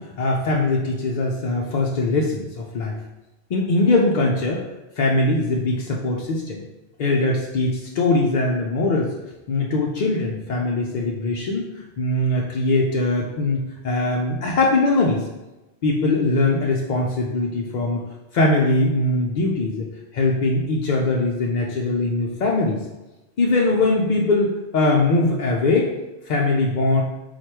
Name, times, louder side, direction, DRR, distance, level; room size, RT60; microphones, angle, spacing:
voice 1, 0.0-3.0 3.5-4.7 5.0-6.6 7.0-9.1 9.5-15.3 15.8-18.0 18.3-19.9 20.1-22.8 23.4-25.9 26.3-27.0, left 2 dB, 55° left, -2 dB, 0.5 m, -21 dB
4.4 x 2.4 x 4.5 m, 1.0 s
omnidirectional pair, 1.2 m